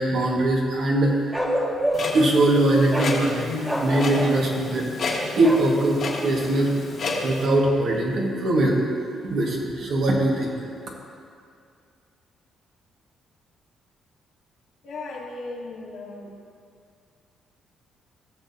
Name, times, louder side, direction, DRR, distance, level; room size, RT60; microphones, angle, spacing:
voice 1, 0.0-1.4 2.1-3.5 3.8-4.9 5.4-6.7 7.2-8.8 9.2-10.6, right 1 dB, 70° right, -2 dB, 1.8 m, -21 dB
Bark, 1.3-2.2 2.9-3.2 3.6-4.4 5.4-5.7, equal, 10° right, 1.4 m, -26 dB
Clock, 1.9-7.5, left 3 dB, 60° left, 1.6 m, -31 dB
voice 2, 14.8-16.3, left 2 dB, 75° left, -4 dB, 1.9 m, -36 dB
16.0 x 6.7 x 2.8 m, 2.3 s
cardioid pair, 90°, 0 cm